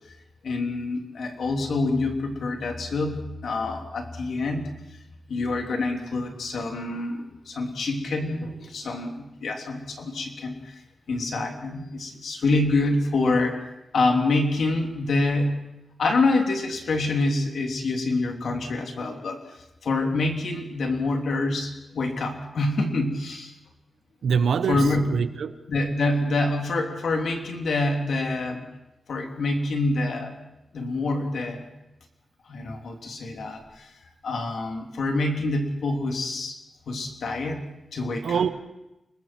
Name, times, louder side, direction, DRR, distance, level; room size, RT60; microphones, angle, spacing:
voice 1, 0.4-4.7 5.3-10.8 11.1-13.6 13.9-15.7 16.0-19.4 19.8-23.5 24.7-25.2 25.7-28.7 29.1-30.3 30.7-31.7 32.5-33.9 34.2-36.6 36.9-37.6 37.9-38.4, left 2 dB, 70° left, 2 dB, 3.2 m, -26 dB
voice 2, 24.2-25.6 38.2-38.5, right 6 dB, 80° right, 10 dB, 1.2 m, -24 dB
30.0 x 20.5 x 4.6 m, 0.94 s
wide cardioid pair, 160°, 0 cm